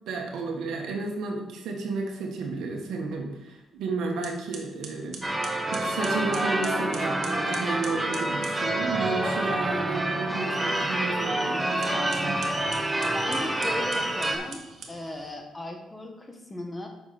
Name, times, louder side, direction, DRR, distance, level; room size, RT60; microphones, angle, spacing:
voice 1, 0.1-5.2 5.7-12.4, right 3 dB, 80° right, 2 dB, 1.6 m, -32 dB
sound 1, 3.7-3.8 4.2-8.6 11.7-15.4, right 5 dB, 60° right, 1.4 m, -43 dB
Church bell / Car / Alarm, 5.2-14.4, right 1 dB, 15° right, 1.2 m, -27 dB
voice 2, 13.1-16.9, left 1 dB, 15° left, 3 dB, 1.5 m, -37 dB
8.1 x 6.2 x 4.3 m, 1.0 s
cardioid pair, 90°, 0 cm